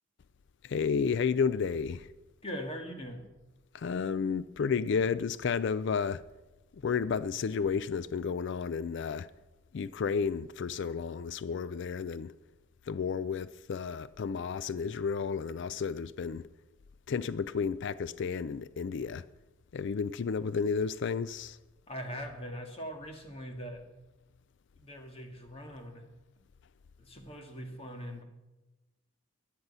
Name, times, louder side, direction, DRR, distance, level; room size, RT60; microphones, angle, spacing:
voice 1, 0.6-2.1 3.7-6.2 6.7-9.3 9.7-12.3 12.9-16.5 17.1-19.2 19.7-21.6, left 6 dB, 60° left, 0.4 m, -32 dB
voice 2, 2.4-3.3 21.9-23.9 24.8-26.1 27.0-28.2, equal, 30° left, 1.8 m, -41 dB
16.0 x 10.5 x 5.5 m
head